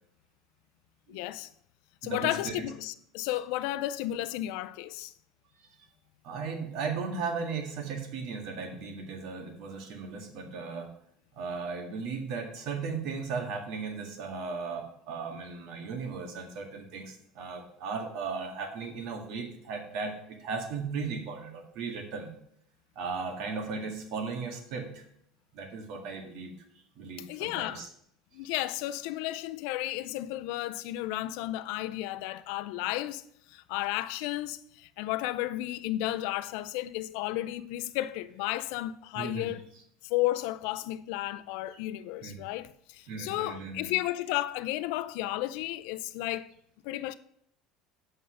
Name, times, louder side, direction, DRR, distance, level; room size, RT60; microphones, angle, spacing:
voice 1, 1.1-1.5 2.0-5.1 27.3-27.9 28.3-39.7 40.0-46.5 46.8-47.1, left 15 dB, 75° left, 0.4 m, -33 dB
voice 2, 2.0-2.7 6.2-10.9 11.4-22.3 23.0-25.0 25.5-26.5 27.0-27.9 39.2-39.5 42.2-42.5 43.1-43.9, right 4 dB, 60° right, 1.8 m, -36 dB
7.8 x 5.5 x 6.3 m
cardioid pair, 160°, 0 cm